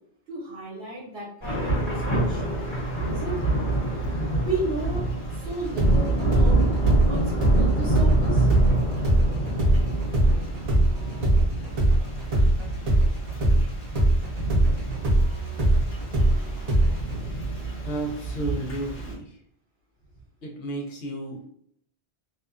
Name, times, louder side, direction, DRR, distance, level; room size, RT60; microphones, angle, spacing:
voice 1, 0.3-2.4 3.1-3.6 4.4-5.1 5.3-6.5 7.0-8.5, right 2 dB, 65° right, -4 dB, 1.0 m, -33 dB
Thunder / Rain, 1.4-19.1, right 2 dB, 45° left, 1.4 m, -27 dB
sound 1, 5.8-13.6 13.9-17.2, right 1 dB, 40° right, 0.7 m, -21 dB
voice 2, 17.8-19.4 20.4-21.5, right 2 dB, 75° left, -1 dB, 1.0 m, -33 dB
2.7 x 2.2 x 2.4 m, 0.65 s
omnidirectional pair, 1.2 m